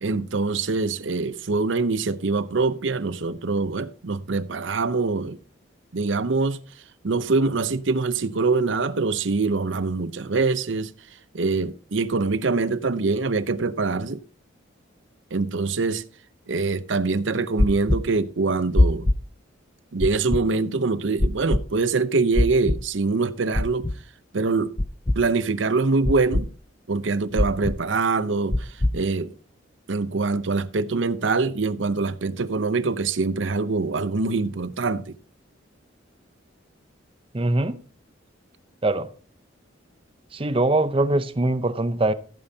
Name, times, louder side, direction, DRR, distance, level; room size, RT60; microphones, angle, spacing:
voice 1, 0.0-5.4 5.9-6.6 7.0-10.9 11.3-14.2 15.3-16.0 16.5-19.1 19.9-23.9 24.3-24.8 25.2-26.5 26.9-29.3 29.9-35.2, right 3 dB, 65° right, 0.7 m, -24 dB
sound 1, 17.6-18.0 18.8-19.2 20.0-20.4 21.2-21.6 22.3-22.8 23.5-23.9 24.8-25.2 26.0-26.4 27.4-27.8 28.5-28.9, left 1 dB, 20° left, 0.4 m, -20 dB
voice 2, 37.3-37.8 38.8-39.1 40.3-42.1, right 2 dB, 25° right, 0.6 m, -22 dB
15.5 x 8.9 x 2.8 m
head